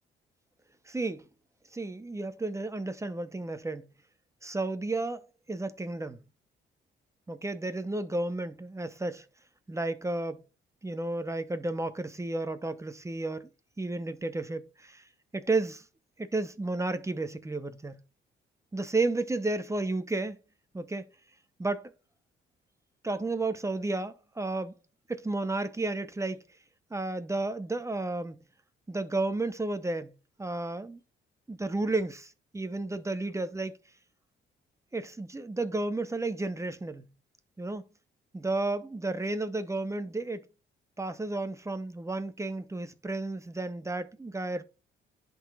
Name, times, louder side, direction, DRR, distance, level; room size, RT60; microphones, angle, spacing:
voice 1, 0.9-1.2 1.7-3.9 4.4-6.2 7.3-9.2 9.7-10.4 10.8-13.5 13.8-15.0 15.3-15.8 16.2-18.0 18.7-20.4 20.7-21.1 21.6-21.9 23.0-24.8 25.1-26.4 26.9-28.4 28.9-30.1 30.4-31.0 31.5-33.8 34.9-37.1 37.6-37.8 38.3-40.4 41.0-44.6, right 2 dB, 15° right, 0.7 m, -32 dB
11.0 x 4.0 x 2.3 m
cardioid pair, 90°, 20 cm